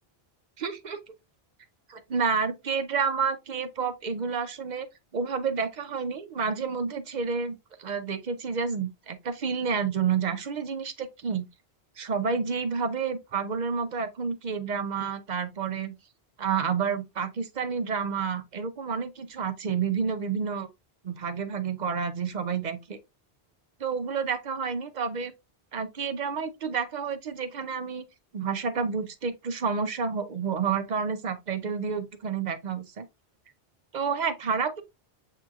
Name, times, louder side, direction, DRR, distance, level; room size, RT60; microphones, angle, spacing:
voice 1, 0.6-1.0 1.9-4.9 5.1-11.5 12.0-15.9 16.4-20.7 21.0-23.0 23.8-25.3 25.7-28.0 28.3-33.0 33.9-34.8, right 6 dB, 50° right, 0.6 m, -29 dB
7.2 x 2.9 x 2.3 m
omnidirectional pair, 1.1 m